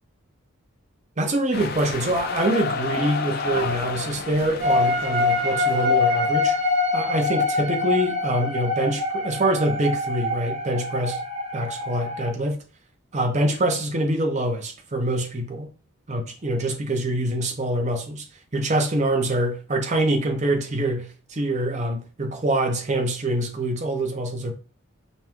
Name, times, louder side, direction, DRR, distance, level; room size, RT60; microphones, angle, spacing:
voice 1, 1.2-6.6 6.9-11.2 11.5-12.6 13.1-15.7 16.1-18.2 18.5-24.5, right 1 dB, 35° right, 0.7 m, -25 dB
sound 1, 1.5-6.7, left 4 dB, 45° left, 0.5 m, -31 dB
sound 2, 4.6-12.3, left 3 dB, 85° right, 1.7 m, -24 dB
5.3 x 2.3 x 3.0 m
head